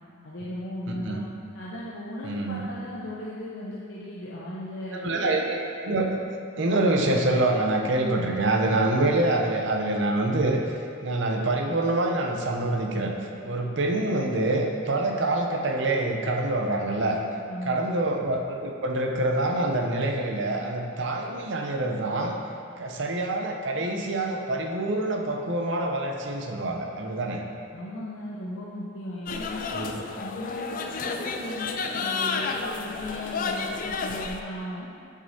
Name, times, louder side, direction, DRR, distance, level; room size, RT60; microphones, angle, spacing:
voice 1, 0.2-1.2 1.5-5.3 17.5-17.9 27.7-29.7 30.2-34.9, left 1 dB, 75° left, -7 dB, 0.8 m, -36 dB
voice 2, 0.9-1.2 2.2-2.7 4.9-6.2 6.6-10.6 11.0-13.1 13.4-17.2 17.6-22.4 22.8-27.4 29.7-29.9, right 2 dB, 65° right, 1 dB, 0.7 m, -26 dB
sound 1, 29.3-34.4, left 4 dB, 45° left, 0.3 m, -31 dB
7.7 x 6.4 x 2.8 m, 2.4 s
head